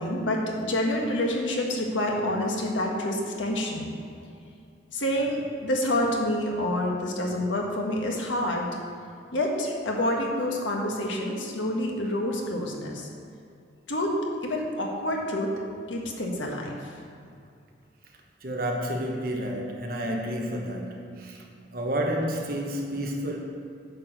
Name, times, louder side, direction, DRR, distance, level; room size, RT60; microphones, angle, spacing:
voice 1, 0.0-4.0 4.9-8.8 9.3-13.1 13.9-14.2 14.4-15.5 15.9-16.9, left 1 dB, 85° left, 0 dB, 1.4 m, -28 dB
voice 2, 18.4-21.5 21.7-23.4, equal, 50° right, 0 dB, 1.1 m, -30 dB
9.4 x 4.6 x 6.5 m, 2.4 s
head